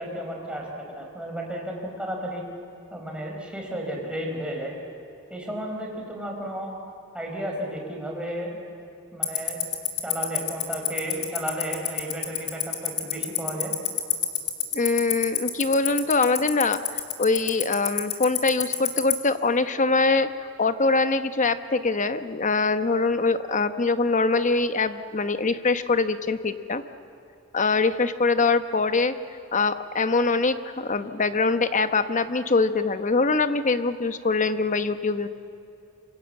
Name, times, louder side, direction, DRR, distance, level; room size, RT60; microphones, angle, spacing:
voice 1, 0.0-2.4 2.9-4.7 5.3-6.7 7.1-8.6 9.1-9.6 10.0-13.7, right 1 dB, 5° right, -1 dB, 5.1 m, -33 dB
Tick-tock, 9.2-19.1, left 16 dB, 80° left, 3.3 m, -23 dB
voice 2, 14.7-26.8 27.5-29.1 29.5-35.3, left 3 dB, 35° left, 10 dB, 1.0 m, -23 dB
27.0 x 24.5 x 7.8 m, 2.8 s
head